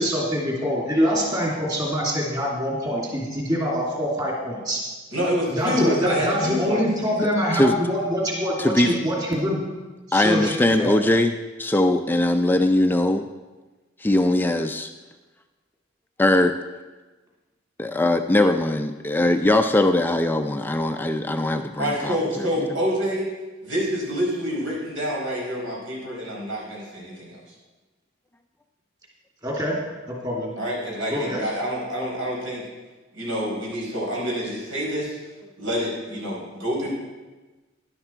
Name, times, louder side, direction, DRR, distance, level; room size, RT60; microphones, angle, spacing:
voice 1, 0.0-4.8 5.5-9.6 10.1-10.9 29.4-29.7 30.1-30.5 31.1-31.4, equal, 20° right, -3 dB, 2.8 m, -25 dB
voice 2, 5.1-6.8 21.8-23.4 23.6-27.4 30.6-32.7 33.1-35.2 35.6-36.9, equal, 80° right, -4 dB, 4.7 m, -27 dB
voice 3, 7.5-7.9 8.6-8.9 10.1-13.3 14.0-14.9 16.2-16.6 17.8-22.5, left 1 dB, 10° left, 7 dB, 0.4 m, -21 dB
12.0 x 11.0 x 4.5 m, 1.2 s
head